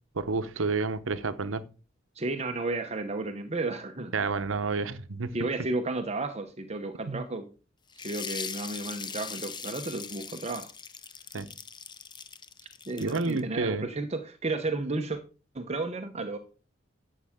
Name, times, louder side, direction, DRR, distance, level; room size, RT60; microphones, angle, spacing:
voice 1, 0.1-1.6 4.1-5.4 7.1-7.2 11.3-11.5 13.0-13.9, right 3 dB, 85° right, 0.9 m, -30 dB
voice 2, 2.1-4.1 5.3-7.5 8.0-10.7 12.9-15.2 15.5-16.4, right 2 dB, 35° right, 0.9 m, -32 dB
sound 1, 7.9-13.4, left 6 dB, 25° left, 0.6 m, -40 dB
12.0 x 7.4 x 3.6 m
head